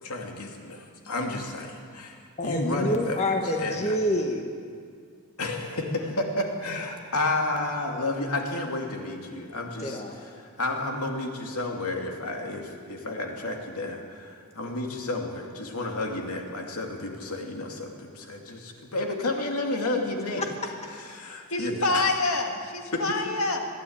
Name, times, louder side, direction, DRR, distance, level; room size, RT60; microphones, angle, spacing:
voice 1, 0.0-3.2 3.6-3.8 5.4-10.0 10.6-20.5 21.1-22.1 22.9-23.2, left 2 dB, 90° left, 2 dB, 2.6 m, -31 dB
voice 2, 2.4-4.5 9.8-10.2 20.4-20.5, left 1 dB, 30° left, 3 dB, 1.6 m, -27 dB
voice 3, 21.5-23.7, left 2 dB, 70° left, 4 dB, 2.0 m, -26 dB
21.0 x 14.0 x 8.8 m, 2.2 s
head